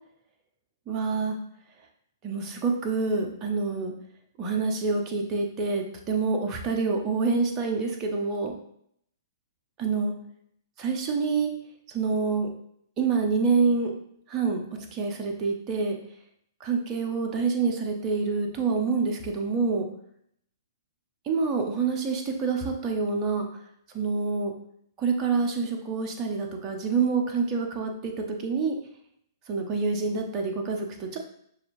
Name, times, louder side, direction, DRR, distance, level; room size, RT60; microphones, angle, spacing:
voice 1, 0.9-1.4 2.2-3.9 4.4-8.5 9.8-10.1 10.8-11.5 11.9-12.5 13.0-13.9 14.3-16.0 16.6-19.9 21.2-23.5 23.9-24.5 25.0-28.8 29.5-31.2, right 4 dB, 25° right, 2 dB, 0.8 m, -27 dB
6.3 x 2.6 x 3.0 m, 0.69 s
figure-of-eight pair, 115°, 2 cm